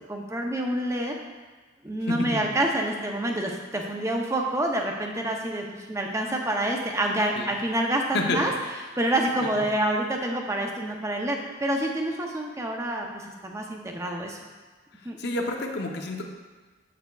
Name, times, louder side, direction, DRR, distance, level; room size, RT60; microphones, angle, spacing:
voice 1, 0.1-1.1 1.8-8.5 9.0-14.4 15.0-15.2, right 1 dB, 15° right, 1 dB, 0.5 m, -27 dB
voice 2, 2.1-2.4 7.4-7.5 8.1-8.4 9.4-9.5 15.2-16.3, left 2 dB, 55° left, 2 dB, 0.7 m, -29 dB
8.0 x 6.7 x 2.3 m, 1.3 s
head